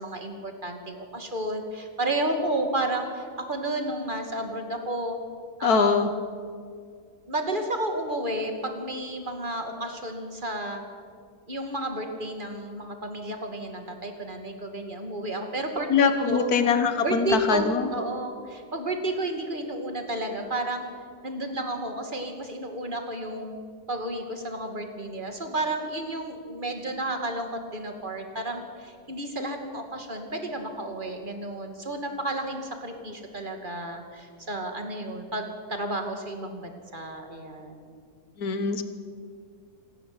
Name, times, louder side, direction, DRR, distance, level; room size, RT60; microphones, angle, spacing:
voice 1, 0.0-5.2 5.6-6.1 7.3-10.8 11.5-16.5 17.0-20.9 21.2-23.6 23.9-37.8, right 1 dB, 30° right, 5 dB, 2.6 m, -32 dB
voice 2, 5.6-6.1 15.9-17.9 38.4-38.8, left 5 dB, 70° left, 9 dB, 1.8 m, -23 dB
26.5 x 12.0 x 9.8 m, 2.2 s
omnidirectional pair, 1.7 m